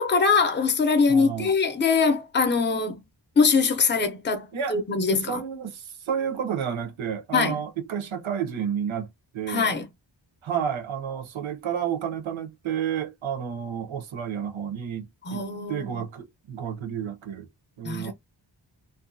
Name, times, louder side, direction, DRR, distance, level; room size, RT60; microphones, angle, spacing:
voice 1, 0.0-3.0 3.4-5.4 7.3-7.6 9.5-9.9 15.3-15.9 17.8-18.1, left 5 dB, 25° left, 0.6 m, -23 dB
voice 2, 1.1-1.5 4.5-4.8 5.1-9.8 10.4-17.5 17.8-18.1, right 8 dB, 85° right, 0.7 m, -31 dB
2.6 x 2.3 x 2.5 m
wide cardioid pair, 100°, 46 cm